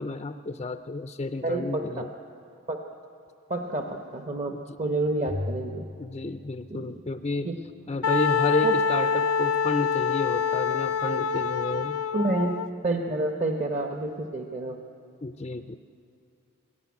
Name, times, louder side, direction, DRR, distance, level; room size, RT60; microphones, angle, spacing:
voice 1, 0.0-2.1 4.5-4.6 6.0-7.5 7.9-12.0 15.2-15.8, left 2 dB, 25° left, 8 dB, 0.5 m, -31 dB
voice 2, 1.4-2.1 2.7-2.8 3.5-5.9 6.7-7.0 7.4-7.5 8.6-8.7 12.1-12.5 12.8-14.8, right 2 dB, 35° right, 3 dB, 1.0 m, -29 dB
Bowed string instrument, 5.3-7.7, left 2 dB, 80° right, 2.9 m, -38 dB
Wind instrument woodwind instrument, 8.0-12.7, left 6 dB, 85° left, 0.6 m, -26 dB
21.0 x 17.5 x 9.5 m, 2.6 s
head